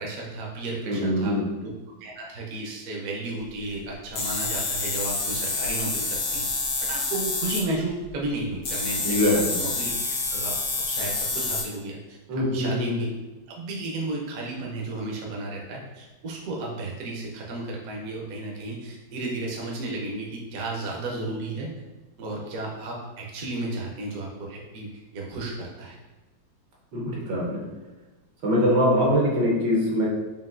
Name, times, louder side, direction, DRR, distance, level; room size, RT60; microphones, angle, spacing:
voice 1, 0.0-1.7 2.0-6.5 6.9-9.9 10.3-10.6 10.9-12.0 12.3-13.1 13.5-21.7 22.2-26.0, right 2 dB, 60° right, -2 dB, 1.0 m, -33 dB
voice 2, 0.9-1.4 9.0-9.6 12.3-12.9 26.9-27.6 28.4-30.1, equal, 80° right, -4 dB, 1.7 m, -23 dB
sound 1, 4.1-7.7 8.6-11.6, left 3 dB, 55° left, 0.6 m, -28 dB
5.2 x 2.6 x 2.5 m, 1.1 s
omnidirectional pair, 1.9 m